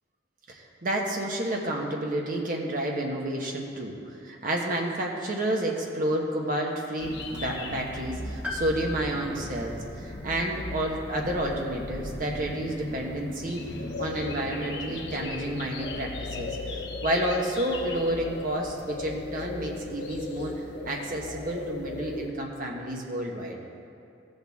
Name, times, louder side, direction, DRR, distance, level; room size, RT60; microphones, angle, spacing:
voice 1, 0.5-3.9 4.2-13.6 14.0-20.5 20.8-23.6, right 1 dB, 45° right, 0 dB, 1.2 m, -30 dB
sound 1, 7.0-22.3, left 2 dB, 60° left, 0.9 m, -37 dB
Piano, 8.4-12.3 12.6-12.7 13.8-13.9, left 2 dB, 5° right, 0.8 m, -41 dB
15.0 x 6.6 x 3.6 m, 2.7 s
head